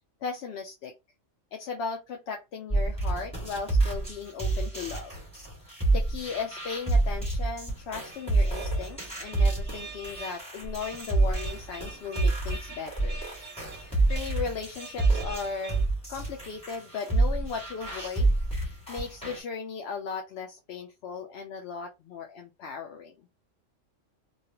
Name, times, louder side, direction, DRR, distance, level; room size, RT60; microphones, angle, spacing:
voice 1, 0.2-0.9 1.5-5.1 5.6-13.2 13.8-15.8 16.1-23.3, left 5 dB, 65° left, 4 dB, 0.7 m, -37 dB
sound 1, 2.7-19.4, right 2 dB, 5° left, 1.7 m, -28 dB
sound 2, 8.1-15.9, right 4 dB, 45° right, 0.7 m, -45 dB
3.1 x 2.3 x 2.8 m, 0.25 s
omnidirectional pair, 1.3 m